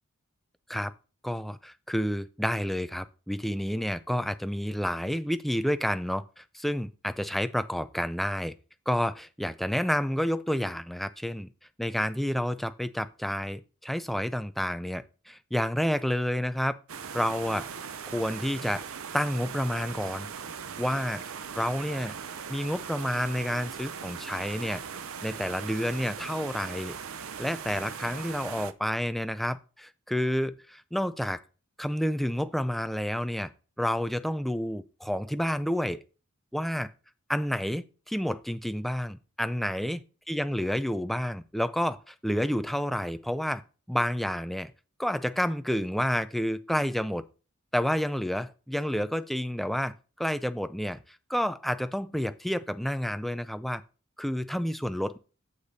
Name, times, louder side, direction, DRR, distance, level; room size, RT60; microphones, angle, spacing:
voice 1, 1.2-8.5 8.9-11.5 11.8-16.8 17.1-17.7 18.0-18.9 19.1-20.3 20.8-21.2 21.5-22.1 22.5-24.8 25.2-26.9 27.4-31.4 31.8-33.5 33.8-36.0 36.5-36.9 37.3-43.6 43.9-44.7 45.0-47.2 47.7-51.0 51.3-53.8 54.2-55.2, equal, ahead, 0.3 m, -29 dB
sound 1, 16.9-28.7, right 7 dB, 75° right, 0.6 m, -39 dB
8.4 x 8.0 x 2.8 m
head